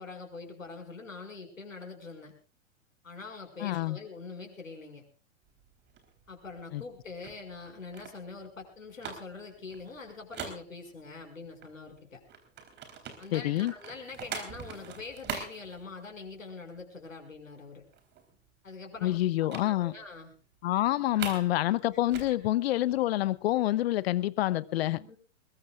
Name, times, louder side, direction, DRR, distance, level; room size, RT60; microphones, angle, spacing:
voice 1, 0.0-2.3 3.0-5.0 6.3-12.2 13.2-17.8 18.6-19.2 19.6-20.3 21.1-21.4 22.3-22.4 25.0-25.2, left 4 dB, 85° left, 5.9 m, -44 dB
voice 2, 3.6-4.0 6.7-6.8 13.3-13.7 19.0-19.9 20.6-25.0, left 15 dB, 50° left, 0.9 m, -27 dB
sound 1, 5.5-11.2 11.6-16.5 16.8-17.1 17.3-17.4 17.8-18.5 19.5-19.7 20.1-20.2 20.5-21.5 21.8-23.5, right 7 dB, 25° right, 3.8 m, -43 dB
22.0 x 21.5 x 2.4 m
figure-of-eight pair, 115°, 39 cm